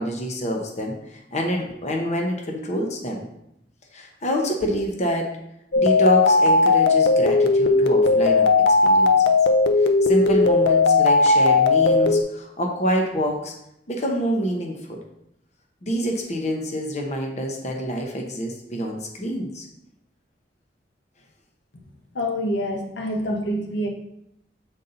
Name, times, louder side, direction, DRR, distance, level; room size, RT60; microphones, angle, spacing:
voice 1, 0.0-3.3 3.9-5.3 5.8-8.5 8.8-9.3 9.8-13.5 13.9-15.0 15.8-19.7, equal, 40° left, 1 dB, 0.9 m, -26 dB
sound 1, 5.7-12.2, left 3 dB, 70° left, 0.5 m, -17 dB
voice 2, 22.1-23.9, equal, 85° left, 2 dB, 1.0 m, -26 dB
7.2 x 4.0 x 3.9 m, 0.79 s
head